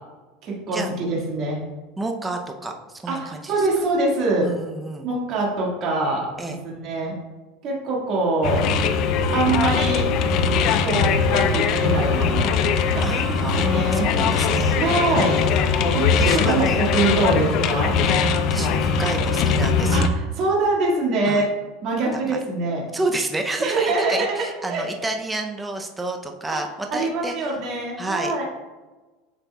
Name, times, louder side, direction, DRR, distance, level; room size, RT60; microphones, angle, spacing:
voice 1, 0.4-1.6 3.1-4.5 5.0-6.3 6.6-7.2 7.6-8.7 9.3-10.1 10.8-12.5 12.9-14.1 14.7-15.4 15.9-17.9 19.9-21.5 21.8-22.8 23.6-24.8 26.5-26.6 26.9-28.4, right 2 dB, 40° right, -3 dB, 1.8 m, -24 dB
voice 2, 2.0-3.6 4.4-5.1 6.4-6.6 13.0-14.8 16.2-16.8 18.1-18.2 18.5-20.0 21.2-21.5 22.3-22.4 22.9-27.5 28.0-28.4, right 2 dB, 10° right, 3 dB, 0.5 m, -30 dB
sound 1, 8.4-20.1, left 5 dB, 45° left, 0.4 m, -21 dB
sound 2, 8.8-14.4, left 3 dB, 30° left, 1.7 m, -37 dB
8.1 x 5.8 x 2.3 m, 1.2 s
supercardioid pair, 155°, 0 cm